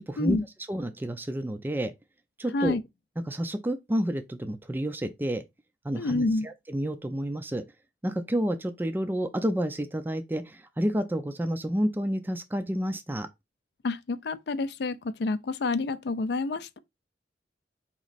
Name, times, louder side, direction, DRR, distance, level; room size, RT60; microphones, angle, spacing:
voice 1, 0.1-0.4 0.7-1.9 2.4-2.8 3.3-5.4 5.8-7.6 8.0-13.3, equal, 10° right, 0.4 m, -30 dB
voice 2, 6.0-6.5 13.8-16.8, left 3 dB, 65° left, 0.4 m, -28 dB
4.2 x 3.0 x 4.0 m
head